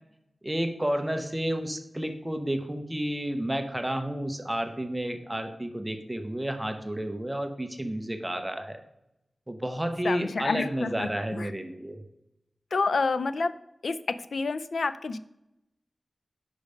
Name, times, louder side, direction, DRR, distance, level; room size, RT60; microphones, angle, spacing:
voice 1, 0.4-8.8 9.5-12.0, right 1 dB, 10° right, 6 dB, 0.6 m, -31 dB
voice 2, 10.0-11.5 12.7-13.5 13.8-15.2, left 4 dB, 80° left, 13 dB, 0.3 m, -29 dB
5.3 x 5.1 x 5.0 m, 0.86 s
wide cardioid pair, 100°, 0 cm